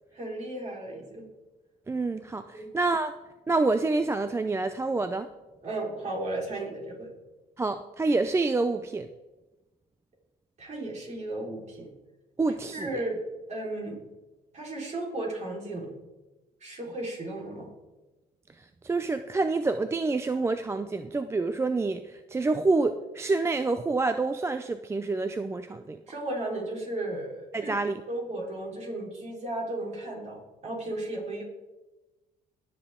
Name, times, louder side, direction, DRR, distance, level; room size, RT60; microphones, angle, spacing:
voice 1, 0.1-1.3 2.5-2.7 5.6-7.1 10.6-11.9 12.5-13.2 13.5-14.0 14.5-15.9 16.6-17.7 26.1-27.7 28.1-31.4, right 2 dB, 40° right, -2 dB, 4.1 m, -35 dB
voice 2, 1.9-3.1 3.5-5.3 7.6-9.1 12.4-12.9 18.6-26.0 27.5-28.0, right 3 dB, 15° right, 10 dB, 0.4 m, -27 dB
20.0 x 7.2 x 3.7 m, 1.1 s
cardioid pair, 110°, 17 cm